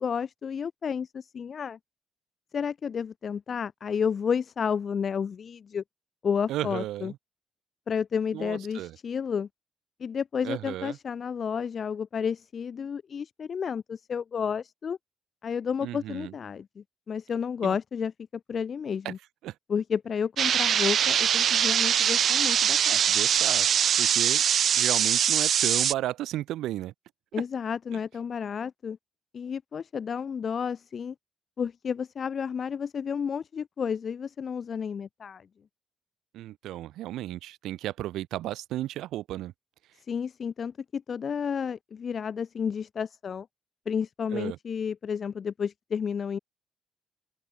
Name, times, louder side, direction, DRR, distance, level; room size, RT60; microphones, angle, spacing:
voice 1, 0.0-1.8 2.5-5.8 6.2-7.1 7.9-9.5 10.0-15.0 15.4-19.2 19.7-23.0 27.3-29.0 29.3-31.1 31.6-35.5 40.0-43.5 43.8-46.4, left 7 dB, 50° left, 3.0 m, -31 dB
voice 2, 6.5-7.2 8.3-9.0 10.4-11.0 15.8-16.3 17.6-17.8 19.1-19.2 19.4-19.5 22.9-23.7 24.0-24.4 24.7-26.9 36.3-39.5 44.3-44.6, right 14 dB, 85° right, 1.7 m, -34 dB
sound 1, 20.4-25.9, right 9 dB, 60° right, 0.7 m, -23 dB
open air
cardioid pair, 90°, 0 cm